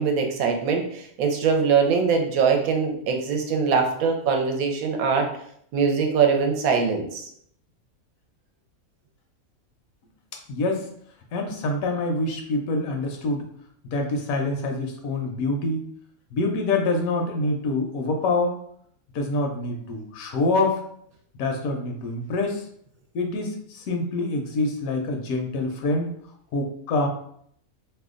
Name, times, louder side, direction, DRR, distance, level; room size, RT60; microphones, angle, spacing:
voice 1, 0.0-5.3 5.7-7.3, right 5 dB, 75° right, 3 dB, 1.0 m, -22 dB
voice 2, 10.5-10.9 11.3-13.5 13.9-15.9 16.3-18.6 19.1-20.8 21.4-22.6 23.1-26.1 26.5-27.1, left 2 dB, 75° left, 3 dB, 1.0 m, -26 dB
2.8 x 2.2 x 3.6 m, 0.66 s
omnidirectional pair, 1.5 m